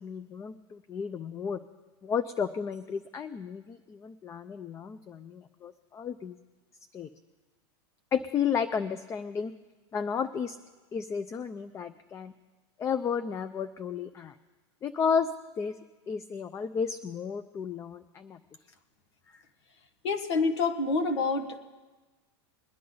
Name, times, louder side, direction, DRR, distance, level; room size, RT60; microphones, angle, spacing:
voice 1, 0.0-1.6 2.0-6.4 6.9-7.1 8.1-9.5 9.9-10.6 10.9-12.3 12.8-14.4 14.8-15.3 15.6-15.7 16.1-18.4, left 6 dB, 20° left, 11 dB, 0.4 m, -32 dB
voice 2, 20.0-21.6, left 3 dB, 80° left, 5 dB, 1.5 m, -27 dB
21.5 x 10.0 x 3.9 m, 1.2 s
supercardioid pair, 130°, 14 cm